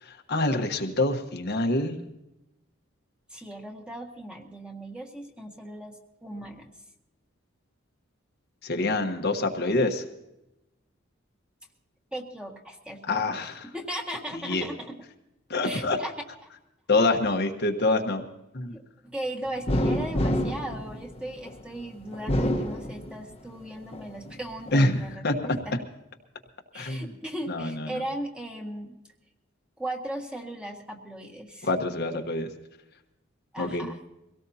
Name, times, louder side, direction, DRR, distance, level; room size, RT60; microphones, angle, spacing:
voice 1, 0.0-2.0 8.6-10.0 13.1-13.7 14.3-14.7 15.5-16.0 16.9-18.2 18.5-18.8 24.7-25.6 26.7-27.1 27.5-28.0 31.6-32.5 33.6-33.9, left 2 dB, 55° left, 4 dB, 1.3 m, -26 dB
voice 2, 3.3-6.7 12.1-13.5 13.7-14.9 15.6-16.1 16.4-16.5 18.7-25.7 26.7-29.0 29.8-31.7 33.5-34.0, right 1 dB, 5° right, 1 dB, 1.7 m, -37 dB
sound 1, 19.7-21.6 22.1-23.5 23.9-24.8, equal, 30° left, 1.3 m, -28 dB
24.0 x 17.5 x 2.8 m, 0.91 s
head